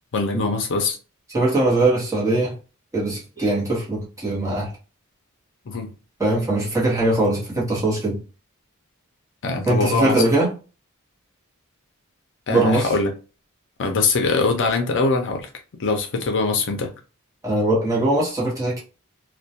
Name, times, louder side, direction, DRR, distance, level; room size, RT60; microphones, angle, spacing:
voice 1, 0.1-1.0 5.7-5.9 9.4-10.2 12.5-13.1 13.8-15.5 15.8-16.9, left 3 dB, 55° left, 0.5 m, -22 dB
voice 2, 1.3-2.5 2.9-4.7 6.2-8.2 9.6-10.5 12.5-12.9 17.4-18.8, right 2 dB, 15° right, 1.0 m, -21 dB
2.2 x 2.1 x 2.7 m
head